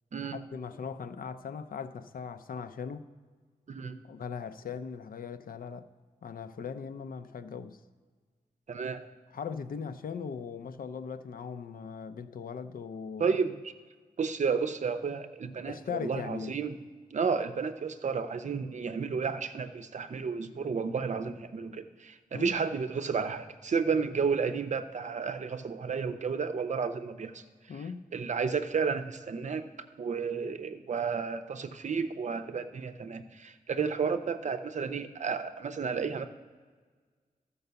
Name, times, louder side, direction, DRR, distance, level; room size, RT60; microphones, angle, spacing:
voice 1, 0.3-3.0 4.0-5.9 6.2-7.8 9.3-13.4 15.7-16.5 22.3-22.6 27.7-28.0, left 6 dB, 80° left, 11 dB, 0.6 m, -39 dB
voice 2, 8.7-9.0 13.2-13.7 14.2-16.8 17.1-27.4 28.1-29.6 30.0-36.3, right 5 dB, 55° right, 9 dB, 0.7 m, -32 dB
13.5 x 5.4 x 6.8 m, 1.5 s
wide cardioid pair, 165°, 15 cm